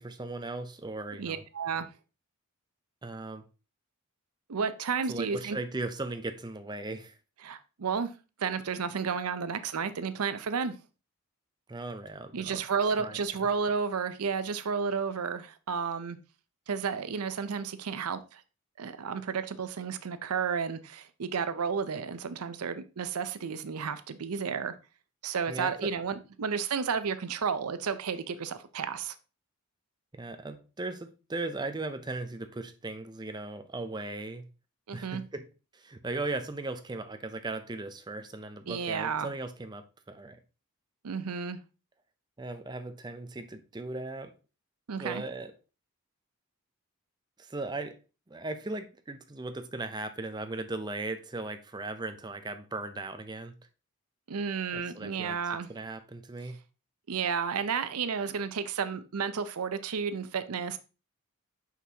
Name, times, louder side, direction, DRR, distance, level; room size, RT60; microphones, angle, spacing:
voice 1, 0.0-1.4 3.0-3.5 5.1-7.1 11.7-13.2 25.5-25.9 30.1-34.5 34.9-40.4 42.4-44.3 45.0-45.5 47.4-48.0 48.3-53.5 54.7-55.4 55.7-56.6, right 2 dB, 20° right, 0.5 m, -38 dB
voice 2, 1.2-1.9 4.5-5.6 7.4-8.1 8.4-10.7 12.3-16.2 16.7-18.4 18.8-24.8 25.2-29.1 34.9-35.2 38.7-39.3 41.0-41.6 44.9-45.2 54.3-55.7 57.1-60.8, right 6 dB, 85° right, 0.6 m, -32 dB
6.0 x 5.8 x 2.8 m
head